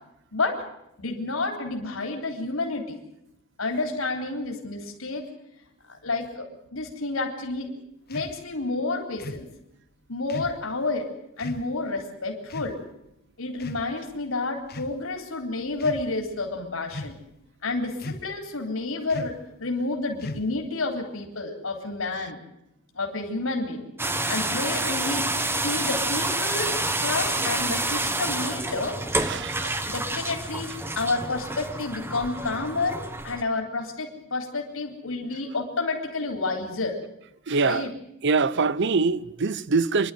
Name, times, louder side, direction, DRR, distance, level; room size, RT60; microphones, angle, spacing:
voice 1, 0.3-0.6 1.0-3.0 3.6-5.3 5.9-7.7 8.1-9.5 10.1-11.1 11.4-12.8 13.4-17.2 17.6-22.4 22.9-23.9 24.3-25.2 25.6-29.0 29.9-30.7 30.9-33.0 33.2-37.0 37.6-37.9, left 3 dB, 85° left, 3.5 m, -30 dB
sound 1, 8.1-8.4 9.2-9.5 10.3-10.6 11.4-11.7 12.5-12.8 13.6-14.1 14.6-15.0 15.7-16.1 16.9-17.3 18.0-18.4 19.1-19.4 20.2-20.7, left 2 dB, 50° left, 1.1 m, -37 dB
sound 2, 24.0-33.4, right 2 dB, 10° right, 1.1 m, -28 dB
voice 2, 29.2-29.8 37.5-37.9 38.2-40.1, right 4 dB, 60° right, 0.7 m, -24 dB
27.5 x 11.5 x 9.1 m
head